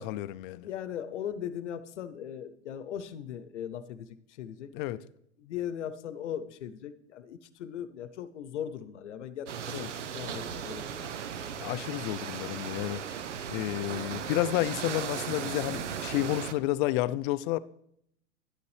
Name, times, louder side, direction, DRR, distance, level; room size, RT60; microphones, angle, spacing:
voice 1, 0.0-0.7 4.7-5.0 9.7-9.9 11.6-13.0 13.5-17.6, left 15 dB, 45° left, 0.5 m, -31 dB
voice 2, 0.6-5.1 5.4-11.2, left 9 dB, 75° left, 0.9 m, -39 dB
sound 1, 9.5-16.5, right 7 dB, 80° right, 0.9 m, -37 dB
12.0 x 9.4 x 3.3 m
hypercardioid pair, 105°, 36 cm